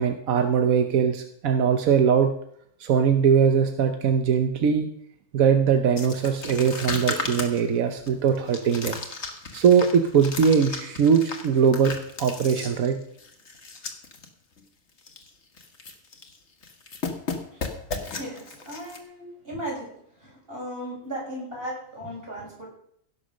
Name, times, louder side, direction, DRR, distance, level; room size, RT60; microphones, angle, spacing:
voice 1, 0.0-2.3 2.8-4.9 5.3-9.0 9.5-11.9 12.2-13.0, right 7 dB, 90° right, 7 dB, 1.3 m, -21 dB
sound 1, 6.0-14.3 14.6-14.7 15.0-15.3 15.6-16.4 16.6-19.0, left 4 dB, 55° left, 1.9 m, -35 dB
voice 2, 18.1-19.9 20.2-22.7, equal, 45° right, -3 dB, 6.3 m, -36 dB
16.5 x 7.0 x 6.4 m, 0.68 s
omnidirectional pair, 1.4 m